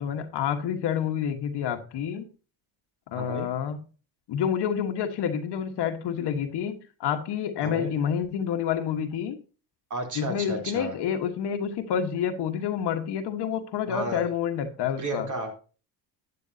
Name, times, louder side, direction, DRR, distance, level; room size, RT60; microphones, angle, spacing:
voice 1, 0.0-2.3 3.1-3.8 4.3-9.4 10.1-15.3, left 8 dB, 60° left, 1.5 m, -28 dB
voice 2, 3.2-3.5 7.6-7.9 9.9-10.9 13.9-14.2 15.0-15.6, right 1 dB, 40° right, 3.6 m, -32 dB
12.0 x 9.1 x 2.8 m
supercardioid pair, 85°, 45 cm